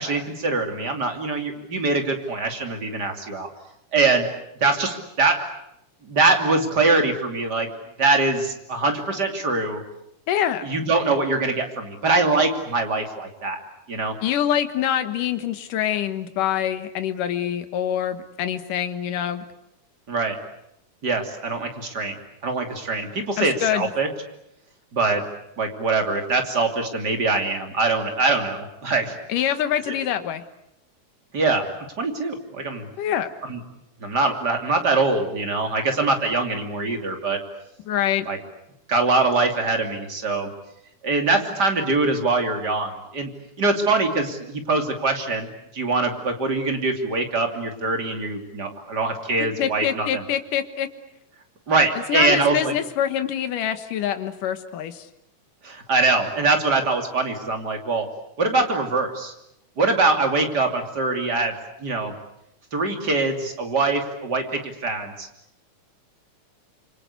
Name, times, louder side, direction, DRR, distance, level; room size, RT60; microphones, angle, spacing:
voice 1, 0.0-3.5 3.9-4.3 4.6-5.4 6.0-7.7 8.0-9.8 10.6-13.6 13.9-14.1 20.1-20.3 21.0-22.1 22.4-24.1 24.9-25.2 25.6-29.1 29.9-30.0 31.3-31.7 32.0-32.8 33.5-33.6 34.0-37.4 38.3-38.4 38.9-40.5 41.0-43.3 43.6-50.2 51.7-52.7 55.6-58.0 58.4-59.3 59.8-61.5 61.8-62.1 62.7-65.3, right 3 dB, 30° right, 4 dB, 3.2 m, -23 dB
voice 2, 10.3-10.7 14.2-19.4 23.4-23.9 29.3-30.4 33.0-33.3 37.9-38.3 49.6-50.9 52.1-55.1, left 10 dB, 85° left, 9 dB, 3.0 m, -25 dB
27.0 x 25.0 x 8.3 m, 0.80 s
omnidirectional pair, 3.6 m